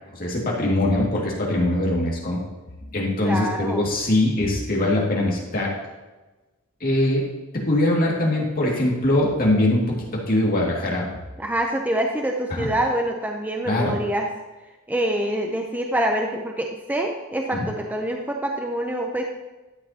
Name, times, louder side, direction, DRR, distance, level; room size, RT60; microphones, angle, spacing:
voice 1, 0.1-2.4 2.9-5.7 6.8-7.3 7.5-9.9 10.3-11.1 12.5-12.7 13.7-13.9 17.5-17.7, left 1 dB, 45° left, -3 dB, 2.2 m, -22 dB
voice 2, 3.2-3.8 11.4-14.3 14.9-19.2, right 1 dB, 10° right, 1 dB, 0.6 m, -25 dB
12.0 x 7.6 x 2.9 m, 1.1 s
head